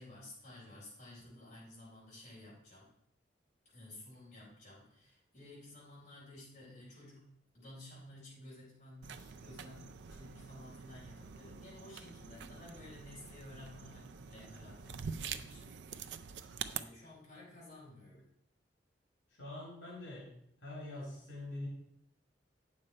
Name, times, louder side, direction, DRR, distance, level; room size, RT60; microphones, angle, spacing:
voice 1, 0.0-2.9 3.7-7.2 7.5-18.3, left 1 dB, 40° left, -6 dB, 4.1 m, -54 dB
sound 1, 9.0-16.8, right 6 dB, 70° right, 0.5 m, -46 dB
voice 2, 19.4-20.3 20.6-21.7, left 2 dB, 75° left, -5 dB, 3.0 m, -44 dB
8.7 x 6.8 x 4.3 m, 0.72 s
head